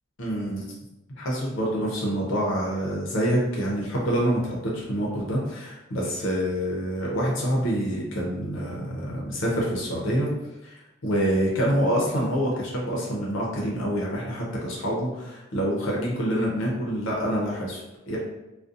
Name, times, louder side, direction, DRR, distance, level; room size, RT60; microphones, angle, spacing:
voice 1, 0.2-0.7 1.2-10.3 10.6-18.2, equal, 75° left, -3 dB, 0.6 m, -26 dB
2.5 x 2.1 x 2.5 m, 0.98 s
head